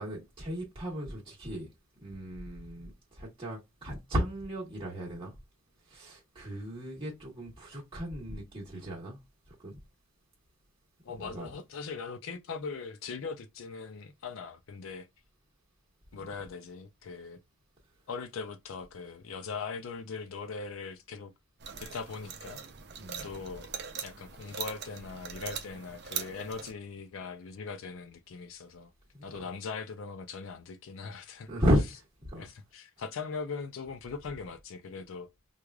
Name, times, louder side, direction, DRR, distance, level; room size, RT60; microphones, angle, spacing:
voice 1, 0.0-1.7 2.0-5.3 5.8-9.2 9.5-9.8 11.2-11.5 23.0-23.3 29.1-29.2 31.5-32.5, equal, 25° right, 1.2 m, -34 dB
voice 2, 11.0-15.1 16.1-17.4 18.1-21.3 21.8-22.6 23.2-23.7 24.0-28.9 29.2-31.5 32.4-35.3, left 5 dB, 75° left, 0.4 m, -40 dB
sound 1, 21.6-26.7, right 7 dB, 55° right, 0.5 m, -41 dB
4.7 x 2.4 x 2.3 m
head